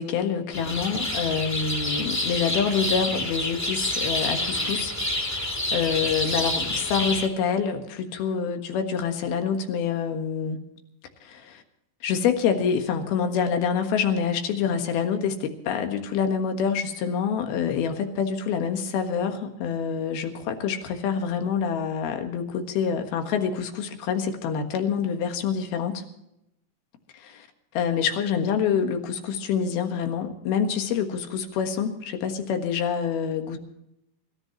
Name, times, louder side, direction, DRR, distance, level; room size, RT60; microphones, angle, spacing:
voice 1, 0.0-4.9 5.7-10.6 11.2-11.6 12.0-26.0 27.1-27.5 27.8-33.6, left 7 dB, 85° left, 5 dB, 3.4 m, -26 dB
sound 1, 0.5-7.3, left 1 dB, 10° left, 0.8 m, -28 dB
26.5 x 13.5 x 3.0 m, 0.83 s
omnidirectional pair, 4.3 m